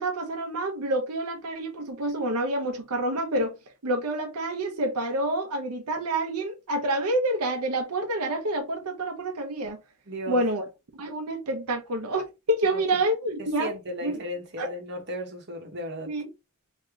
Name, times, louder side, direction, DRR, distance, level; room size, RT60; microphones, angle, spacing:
voice 1, 0.0-3.5 3.8-9.8 10.3-10.6 10.9-13.7 14.0-14.2 14.6-14.7 16.0-16.3, right 1 dB, 90° right, 0.8 m, -28 dB
voice 2, 10.1-10.4 12.7-13.0 13.4-16.1, equal, 50° right, 1.1 m, -35 dB
3.1 x 2.8 x 3.6 m
head